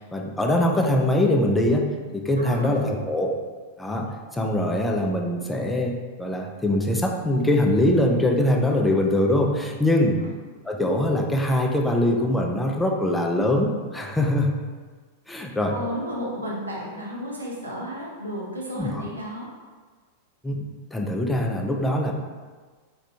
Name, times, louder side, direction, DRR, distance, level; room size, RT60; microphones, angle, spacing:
voice 1, 0.0-3.4 3.8-10.2 10.6-14.5 15.3-15.8 18.8-19.0 20.4-20.6 20.9-22.1, left 1 dB, 10° left, 1 dB, 0.3 m, -23 dB
voice 2, 2.4-2.9 10.1-10.3 15.7-19.5, equal, 80° right, -5 dB, 0.7 m, -33 dB
2.4 x 2.3 x 2.6 m, 1.5 s
figure-of-eight pair, 90°, 0 cm